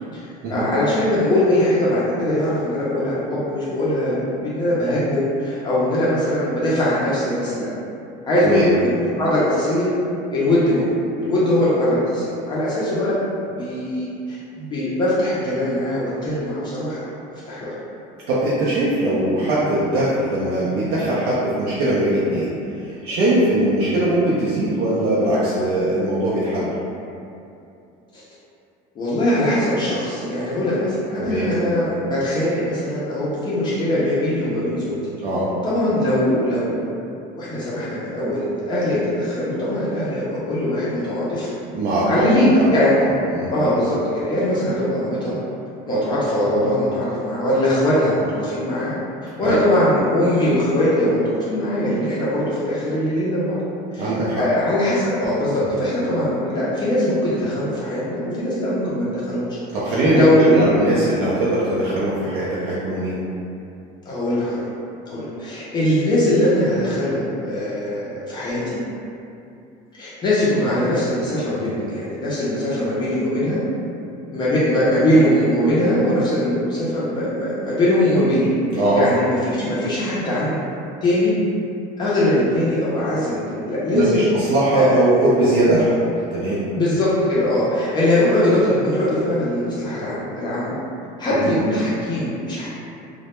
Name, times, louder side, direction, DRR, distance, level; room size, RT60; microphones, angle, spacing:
voice 1, 0.5-7.7 8.2-9.9 10.3-13.2 13.5-17.1 17.5-17.8 23.3-23.5 28.1-28.2 29.0-34.9 35.6-37.0 37.3-41.5 42.0-42.9 43.5-45.4 45.9-48.9 49.2-53.6 53.9-54.1 54.4-59.5 59.9-60.7 64.1-64.7 65.1-68.8 70.0-73.6 74.3-80.6 81.0-81.3 82.0-84.2 84.7-85.0 85.7-85.8 86.7-90.8 91.2-92.7, left 1 dB, 25° left, -9 dB, 0.4 m, -21 dB
voice 2, 18.3-22.5 22.8-26.7 31.2-31.5 35.2-35.5 41.7-42.7 43.0-43.5 49.4-49.6 54.0-54.4 59.7-63.2 78.7-79.0 83.9-86.0 86.3-86.7 91.4-91.6, right 1 dB, 75° right, -8 dB, 0.5 m, -20 dB
2.1 x 2.1 x 2.9 m, 2.6 s
cardioid pair, 155°, 17 cm